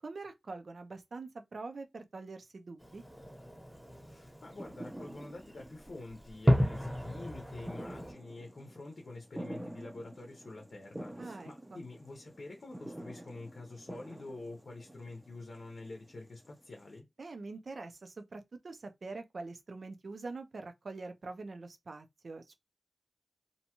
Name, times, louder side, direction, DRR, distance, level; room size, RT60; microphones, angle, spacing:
voice 1, 0.0-3.0 11.2-11.8 17.2-22.5, right 3 dB, 65° right, 0.5 m, -44 dB
Fireworks, 2.8-8.1, equal, ahead, 0.9 m, -34 dB
sound 1, 3.7-17.0, right 1 dB, 15° right, 0.5 m, -49 dB
voice 2, 4.0-17.1, left 2 dB, 65° left, 0.6 m, -47 dB
2.7 x 2.2 x 2.9 m
wide cardioid pair, 65°, 0 cm